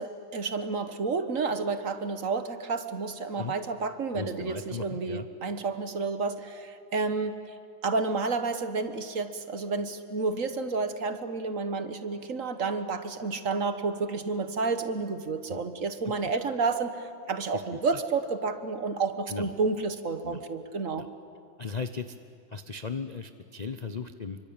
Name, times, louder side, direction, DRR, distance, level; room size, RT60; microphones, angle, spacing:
voice 1, 0.0-21.1, right 4 dB, 45° right, 10 dB, 1.4 m, -30 dB
voice 2, 4.1-5.3 15.5-15.6 16.0-16.1 17.7-17.8 19.3-19.5 20.2-20.4 21.0-21.1 21.6-22.1 22.5-24.4, left 5 dB, 60° left, 9 dB, 0.4 m, -36 dB
27.5 x 24.5 x 8.8 m, 2.4 s
omnidirectional pair, 2.1 m